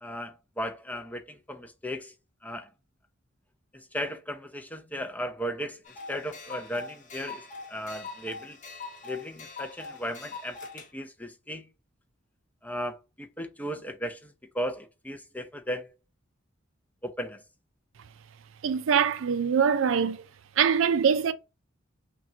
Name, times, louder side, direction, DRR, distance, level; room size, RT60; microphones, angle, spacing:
voice 1, 0.0-2.1 2.4-2.7 3.7-5.8 6.1-8.6 9.0-11.7 12.6-15.9 17.0-17.4, equal, 10° left, 0.5 m, -36 dB
sound 1, 5.9-10.9, left 4 dB, 40° left, 1.1 m, -43 dB
voice 2, 18.6-20.2 20.6-21.3, right 7 dB, 75° right, 0.4 m, -23 dB
5.7 x 2.3 x 2.7 m
head